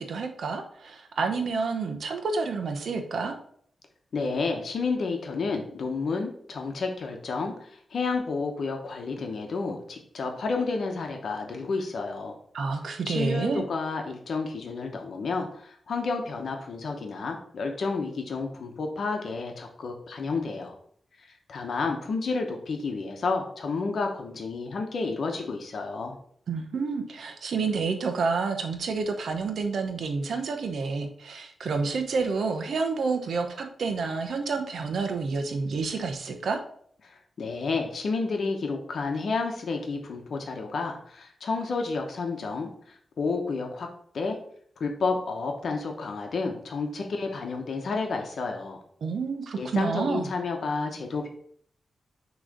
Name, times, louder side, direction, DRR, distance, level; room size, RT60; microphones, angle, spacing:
voice 1, 0.0-3.4 12.5-13.6 26.5-36.6 49.0-50.3, right 4 dB, 75° right, 5 dB, 0.8 m, -29 dB
voice 2, 4.1-12.3 13.1-20.8 21.3-26.1 37.0-43.9 44.1-44.4 44.8-48.8 49.6-51.3, left 4 dB, 65° left, 3 dB, 0.9 m, -31 dB
6.3 x 3.1 x 5.1 m, 0.62 s
wide cardioid pair, 105°, 0 cm